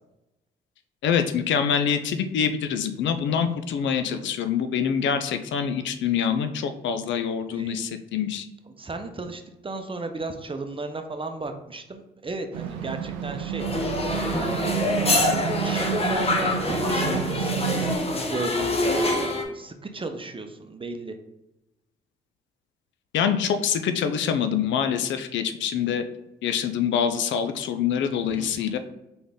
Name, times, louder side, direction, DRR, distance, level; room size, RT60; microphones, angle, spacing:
voice 1, 1.0-8.5 23.1-26.0 26.4-28.8, left 7 dB, 70° left, 9 dB, 0.5 m, -25 dB
voice 2, 7.5-7.9 8.8-13.7 14.3-14.8 15.6-18.0 18.3-21.1 28.3-28.5, right 3 dB, 25° right, 6 dB, 0.7 m, -35 dB
sound 1, 12.5-18.0, right 10 dB, 90° right, 0.4 m, -30 dB
sound 2, 13.6-19.4, left 2 dB, 30° left, 1.0 m, -25 dB
3.9 x 3.8 x 3.6 m, 0.92 s
supercardioid pair, 55°, 20 cm